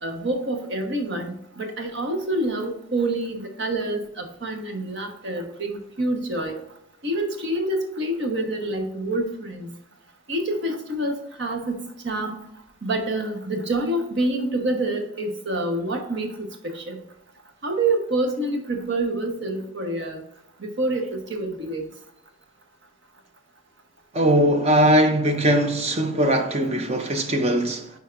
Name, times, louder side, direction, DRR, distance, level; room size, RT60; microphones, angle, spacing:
voice 1, 0.0-6.6 7.0-9.7 10.3-12.4 12.8-17.0 17.6-20.2 20.6-21.9 26.7-26.8, right 1 dB, 65° right, 1.2 m, -27 dB
voice 2, 24.1-27.9, right 1 dB, 35° right, 0.6 m, -20 dB
9.0 x 4.6 x 2.6 m
head